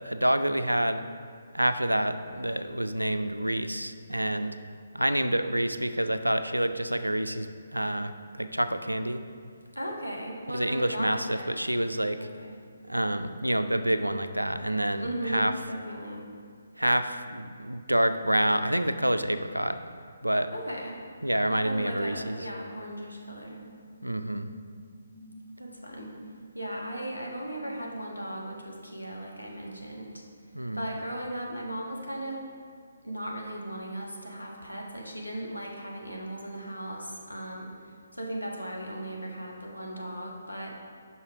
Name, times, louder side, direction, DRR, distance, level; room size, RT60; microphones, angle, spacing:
voice 1, 0.0-1.0 1.5-4.6 4.9-9.2 10.5-12.3 12.8-15.5 16.8-19.8 20.2-20.5 21.2-22.4 24.0-24.5 30.5-30.9, right 1 dB, 90° right, 10 dB, 0.4 m, -28 dB
voice 2, 9.7-11.5 12.2-12.5 15.0-16.2 20.5-21.0 21.6-23.6 25.6-26.1 26.5-30.1 30.7-32.4 33.0-37.7 38.2-40.7, right 1 dB, 90° left, -1 dB, 1.2 m, -37 dB
sound 1, 23.5-28.3, left 1 dB, 15° left, 0.6 m, -50 dB
5.7 x 5.5 x 4.7 m, 2.1 s
figure-of-eight pair, 140°, 0 cm